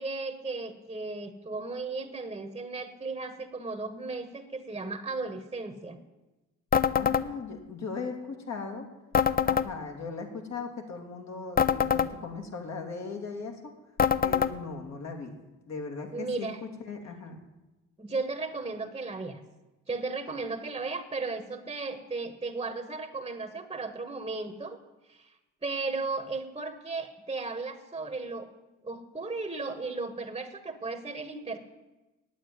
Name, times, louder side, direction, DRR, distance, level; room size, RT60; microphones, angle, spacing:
voice 1, 0.0-6.0 16.1-16.6 18.0-19.4 19.9-24.8 25.1-25.3 25.6-28.5 28.8-31.6, right 3 dB, 15° right, 7 dB, 1.1 m, -35 dB
sound 1, 6.7-7.3 9.1-9.7 11.6-12.1 14.0-14.5, left 7 dB, 30° left, 0.6 m, -24 dB
voice 2, 6.9-8.9 9.4-13.7 14.2-15.3 15.7-17.4, left 4 dB, 60° left, 3 dB, 2.6 m, -38 dB
9.1 x 9.0 x 9.5 m, 1.1 s
cardioid pair, 90°, 30 cm